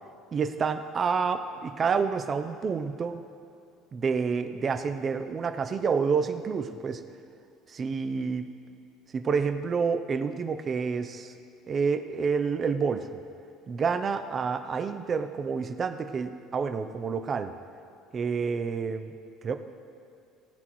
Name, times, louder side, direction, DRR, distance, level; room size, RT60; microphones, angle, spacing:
voice 1, 0.3-3.3 3.9-7.0 7.7-8.5 9.1-11.3 11.7-13.2 13.7-17.5 18.1-19.1 19.4-19.5, right 5 dB, 25° right, 8 dB, 0.5 m, -28 dB
18.0 x 9.9 x 3.0 m, 2.5 s
cardioid pair, 170°, 0 cm